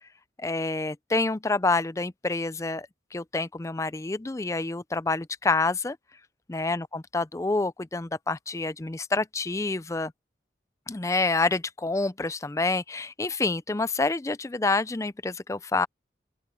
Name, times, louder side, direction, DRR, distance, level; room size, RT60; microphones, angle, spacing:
voice 1, 0.4-2.9 3.1-6.0 6.5-10.1 10.9-15.9, left 3 dB, 15° left, 0.4 m, -27 dB
open air
head